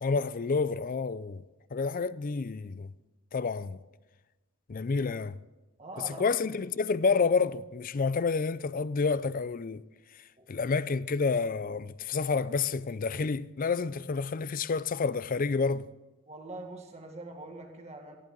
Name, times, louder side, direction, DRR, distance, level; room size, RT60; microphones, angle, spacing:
voice 1, 0.0-1.4 1.7-2.9 3.3-3.8 4.7-5.4 6.2-9.8 10.5-15.9, left 4 dB, 40° left, 0.4 m, -29 dB
voice 2, 5.8-6.3 10.4-10.5 16.3-18.2, right 2 dB, 30° right, 1.9 m, -43 dB
19.0 x 14.0 x 3.9 m
head